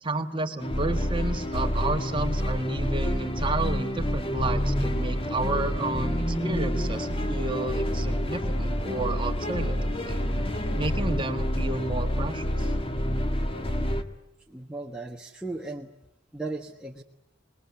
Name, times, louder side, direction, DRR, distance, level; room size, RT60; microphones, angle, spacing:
voice 1, 0.0-10.2 10.8-12.7, right 2 dB, 25° right, 7 dB, 1.6 m, -31 dB
sound 1, 0.6-14.0, equal, 30° left, 1.6 m, -28 dB
sound 2, 4.2-8.1 8.7-9.2 9.5-10.2 10.7-10.9 11.3-11.4, equal, 10° left, 1.9 m, -36 dB
voice 2, 14.5-15.9 16.3-17.0, right 2 dB, 5° right, -1 dB, 1.3 m, -36 dB
25.0 x 20.5 x 9.5 m, 0.83 s
head